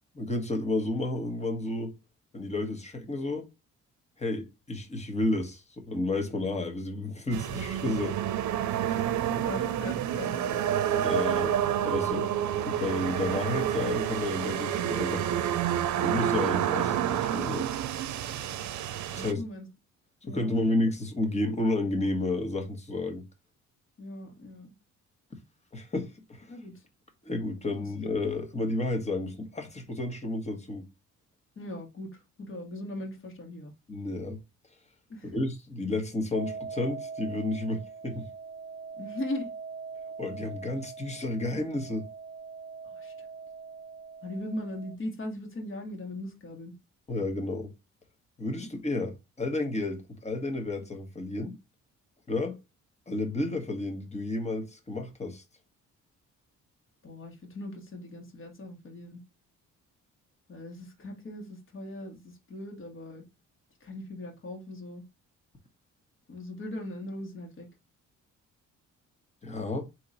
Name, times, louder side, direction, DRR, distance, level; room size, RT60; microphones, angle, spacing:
voice 1, 0.1-1.9 2.3-3.5 4.2-8.2 8.8-9.1 11.0-12.3 12.6-15.3 16.0-17.7 19.1-19.4 20.3-23.2 25.7-26.6 27.2-30.8 33.9-34.4 35.2-38.3 40.2-42.1 47.1-47.7 48.4-51.5 52.3-52.6 53.1-55.4 69.4-69.9, left 2 dB, 20° left, 1.4 m, -31 dB
sound 1, 7.3-19.3, right 10 dB, 70° right, 0.6 m, -29 dB
voice 2, 9.1-10.7 19.2-19.7 20.2-20.9 24.0-24.7 26.5-26.7 27.8-27.9 31.6-33.7 35.1-35.4 39.0-39.5 42.8-43.1 44.2-46.8 57.0-59.2 60.5-63.2 63.8-65.0 66.3-67.7, left 1 dB, 40° left, 1.8 m, -39 dB
sound 2, 36.3-45.0, right 5 dB, 20° right, 0.8 m, -42 dB
3.8 x 3.0 x 4.0 m
cardioid pair, 90°, 30 cm